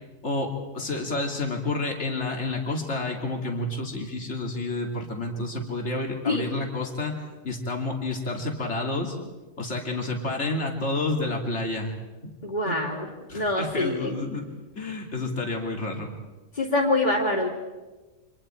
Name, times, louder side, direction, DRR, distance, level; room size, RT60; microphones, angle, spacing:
voice 1, 0.2-9.2 9.6-11.9 12.2-12.3 12.7-12.8 13.3-14.5 14.8-16.1, left 2 dB, 65° left, 1 dB, 3.0 m, -29 dB
voice 2, 12.4-13.1 13.3-14.1 16.5-17.5, left 2 dB, 35° left, -4 dB, 2.8 m, -25 dB
29.5 x 25.5 x 4.5 m, 1.2 s
omnidirectional pair, 1.3 m